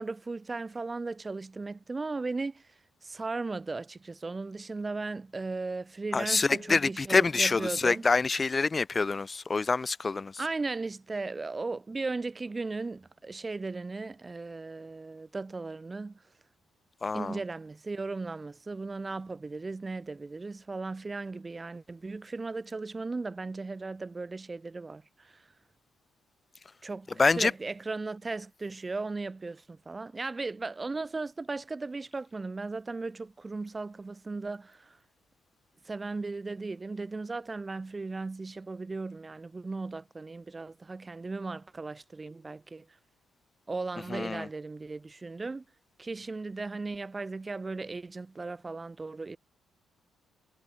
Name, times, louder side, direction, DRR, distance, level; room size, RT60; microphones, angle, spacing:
voice 1, 0.0-2.6 3.0-8.1 10.4-16.2 17.1-25.4 26.8-35.0 35.8-42.9 43.7-45.6 46.0-49.4, right 3 dB, 25° right, 5.4 m, -36 dB
voice 2, 6.1-10.3 17.0-17.4 27.2-27.5 44.1-44.5, left 4 dB, 30° left, 0.8 m, -26 dB
cardioid pair, 90°, 0 cm